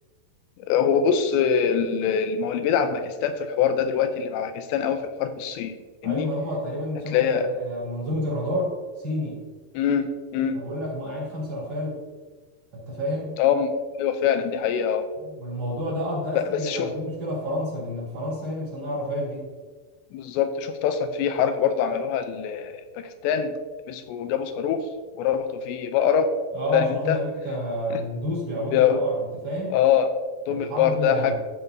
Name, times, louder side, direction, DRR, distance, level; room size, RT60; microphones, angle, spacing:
voice 1, 0.7-5.8 6.0-6.3 7.1-7.5 9.7-10.6 13.4-13.7 14.0-15.0 16.3-16.9 20.1-23.5 23.9-24.9 25.2-26.3 26.7-27.2 27.9-28.0 28.7-29.0 29.7-30.1 30.5-31.3, left 8 dB, 85° left, 8 dB, 2.9 m, -24 dB
voice 2, 6.0-9.4 10.5-12.0 12.7-13.4 15.2-19.5 26.5-29.2 29.4-29.8 30.5-31.3, equal, 35° right, -6 dB, 3.4 m, -29 dB
14.5 x 5.5 x 2.7 m, 1.4 s
omnidirectional pair, 5.0 m